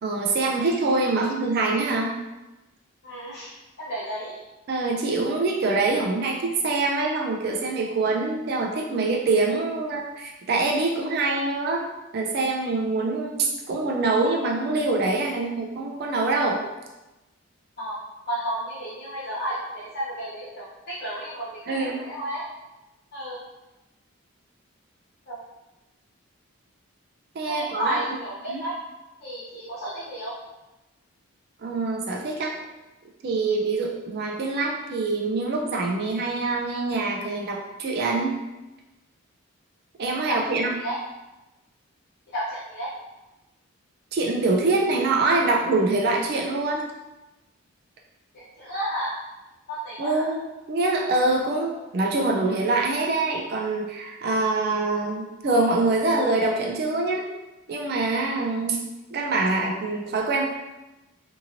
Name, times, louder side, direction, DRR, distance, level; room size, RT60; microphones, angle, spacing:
voice 1, 0.0-2.1 4.7-11.8 12.1-16.6 21.7-22.0 27.3-28.0 28.5-28.6 31.6-32.5 33.2-38.4 40.0-40.8 44.1-46.8 50.0-50.4 50.7-57.2 57.7-58.8 59.1-60.5, right 3 dB, 45° right, -1 dB, 0.3 m, -24 dB
voice 2, 3.0-4.4 17.8-18.0 18.3-22.4 23.1-23.4 25.3-25.4 27.5-28.8 29.2-30.3 40.3-40.4 40.7-41.0 42.3-42.9 48.3-49.2 49.7-50.3, equal, 50° left, -12 dB, 0.8 m, -32 dB
2.8 x 2.8 x 2.5 m, 1.0 s
head